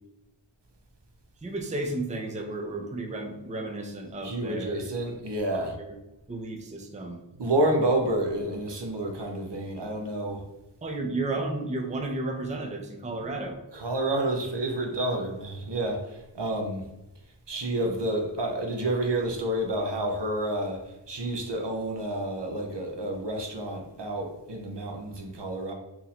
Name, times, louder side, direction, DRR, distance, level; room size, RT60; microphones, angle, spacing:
voice 1, 1.4-4.7 6.3-7.2 10.8-13.6, right 2 dB, 15° right, 0.5 m, -33 dB
voice 2, 4.2-5.7 7.4-10.4 11.0-11.1 13.7-16.8 17.5-25.7, right 1 dB, 60° right, 0.8 m, -29 dB
2.9 x 2.6 x 4.1 m
wide cardioid pair, 40°, 47 cm